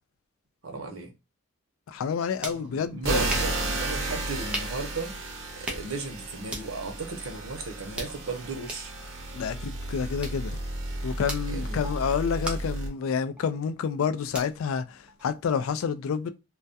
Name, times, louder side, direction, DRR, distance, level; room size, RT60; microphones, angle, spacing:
voice 1, 0.6-1.1 2.5-5.1 5.6-8.9 11.5-11.8, right 3 dB, 90° right, 0.7 m, -35 dB
voice 2, 1.9-3.3 9.3-10.6 11.0-16.3, left 6 dB, 80° left, 0.3 m, -29 dB
sound 1, 2.0-15.7, right 1 dB, 5° right, 0.4 m, -42 dB
sound 2, 3.0-12.9, right 2 dB, 60° right, 0.8 m, -33 dB
2.2 x 2.1 x 2.6 m
head